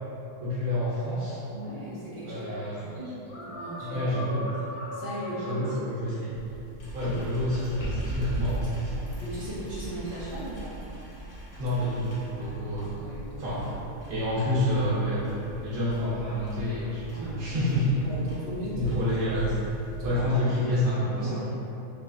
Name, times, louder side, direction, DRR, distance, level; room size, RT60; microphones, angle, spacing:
voice 1, 0.4-1.4 2.2-3.0 3.8-4.4 5.4-6.3 6.9-8.9 11.6-13.0 13.4-13.7 14.1-18.0 18.7-19.5 20.0-21.4, left 1 dB, 85° right, -10 dB, 1.2 m, -28 dB
voice 2, 1.5-2.6 3.0-4.2 4.9-5.8 8.9-10.7 12.3-13.6 17.1-17.6 18.0-19.1 20.0-20.4 21.0-21.4, right 1 dB, 25° right, -11 dB, 0.9 m, -38 dB
sound 1, 3.3-5.8 7.0-7.6 8.2-8.4, left 1 dB, 55° left, 0.8 m, -38 dB
sound 2, 6.3-20.1, right 1 dB, 85° left, 1.4 m, -39 dB
3.6 x 3.0 x 2.4 m, 2.8 s
omnidirectional pair, 1.4 m